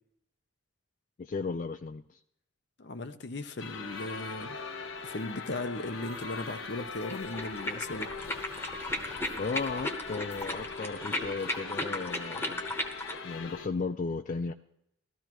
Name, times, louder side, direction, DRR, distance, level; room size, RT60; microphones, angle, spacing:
voice 1, 1.2-2.2 9.4-12.6 13.2-14.5, left 4 dB, 40° left, 9 dB, 0.3 m, -35 dB
voice 2, 2.8-4.6 5.0-8.1, left 2 dB, 55° left, 10 dB, 0.7 m, -37 dB
sound 1, 3.6-13.7, left 4 dB, 80° left, 1.1 m, -41 dB
sound 2, 7.0-13.2, left 1 dB, 10° left, 1.1 m, -36 dB
16.5 x 13.5 x 3.0 m, 0.78 s
head